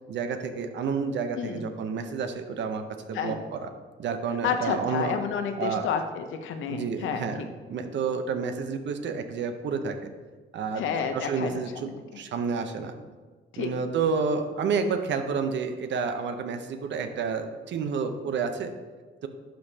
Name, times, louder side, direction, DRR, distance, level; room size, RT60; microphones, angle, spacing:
voice 1, 0.1-3.7 4.0-5.2 5.6-5.9 6.7-10.0 10.5-10.8 11.1-12.9 13.6-18.7, right 5 dB, 65° right, 7 dB, 0.8 m, -30 dB
voice 2, 1.3-1.7 3.1-3.4 4.4-7.5 10.7-11.9 13.5-13.7, left 6 dB, 80° left, 7 dB, 0.8 m, -30 dB
11.0 x 5.3 x 2.8 m, 1.4 s
cardioid pair, 90°, 20 cm